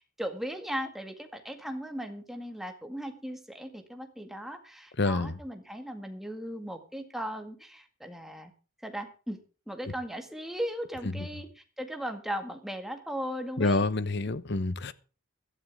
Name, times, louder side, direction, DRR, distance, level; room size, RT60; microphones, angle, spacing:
voice 1, 0.0-8.5 8.8-9.4 9.7-13.9 14.3-14.4, equal, ahead, 2.0 m, -37 dB
voice 2, 5.0-5.4 13.6-14.9, left 2 dB, 55° left, 1.0 m, -27 dB
16.5 x 12.0 x 3.6 m
head